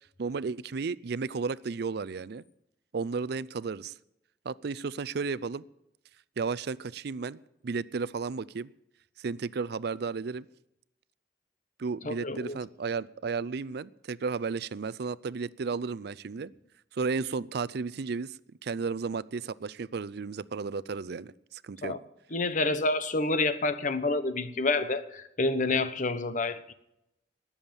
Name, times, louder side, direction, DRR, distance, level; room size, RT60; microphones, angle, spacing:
voice 1, 0.2-2.4 2.9-3.9 4.4-5.6 6.4-8.7 9.2-10.5 11.8-16.5 16.9-21.9, right 4 dB, 65° right, 19 dB, 0.5 m, -33 dB
voice 2, 12.0-12.6 21.8-22.0 22.3-26.7, left 3 dB, 45° left, 12 dB, 1.0 m, -28 dB
19.5 x 7.2 x 7.1 m, 0.83 s
head